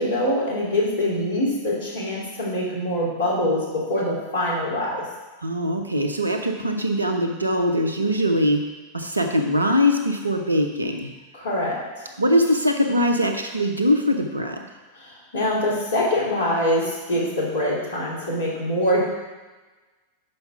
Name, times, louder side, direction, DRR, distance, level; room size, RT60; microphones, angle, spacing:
voice 1, 0.0-5.0 11.3-12.1 15.0-19.0, left 1 dB, 65° left, -5 dB, 2.5 m, -24 dB
voice 2, 5.4-8.6 8.9-11.1 12.2-14.6, equal, 80° right, 4 dB, 0.8 m, -22 dB
5.7 x 5.5 x 5.7 m, 1.2 s
figure-of-eight pair, 90°, 0 cm